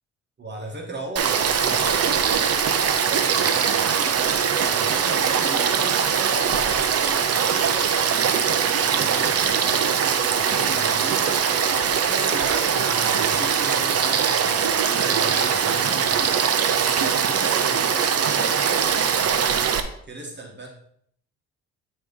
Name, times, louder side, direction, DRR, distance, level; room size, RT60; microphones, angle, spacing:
voice 1, 0.4-4.2 4.7-11.3 11.9-16.3 16.8-19.7 20.1-20.7, right 2 dB, 35° right, 0 dB, 1.6 m, -37 dB
Frog / Stream, 1.2-19.8, right 7 dB, 55° right, 0.9 m, -21 dB
9.8 x 3.3 x 5.4 m, 0.67 s
cardioid pair, 90°, 30 cm